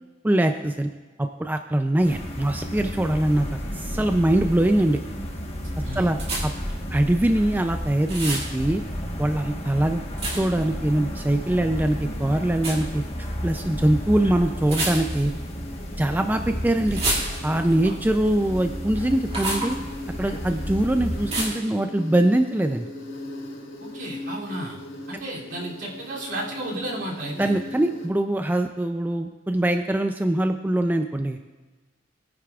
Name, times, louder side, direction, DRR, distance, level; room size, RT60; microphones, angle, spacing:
voice 1, 0.2-0.9 1.2-5.0 6.0-6.2 6.4-6.5 6.9-8.8 9.2-10.0 10.3-13.0 13.4-15.3 16.0-17.0 17.4-19.8 20.2-22.9 27.4-31.4, right 1 dB, 10° right, 6 dB, 0.4 m, -23 dB
sound 1, 2.0-21.4, equal, 30° left, 1.3 m, -32 dB
sound 2, 6.2-6.7 8.1-8.5 10.2-10.6 12.6-12.8 14.6-15.4 16.9-17.7 19.3-19.7 21.3-21.7, right 2 dB, 30° right, 2.2 m, -28 dB
Insect, 11.4-28.1, left 1 dB, 85° left, 4.2 m, -40 dB
voice 2, 23.8-24.8 25.1-27.5, right 1 dB, 65° right, -4 dB, 2.8 m, -33 dB
21.0 x 9.6 x 2.4 m, 1.2 s
head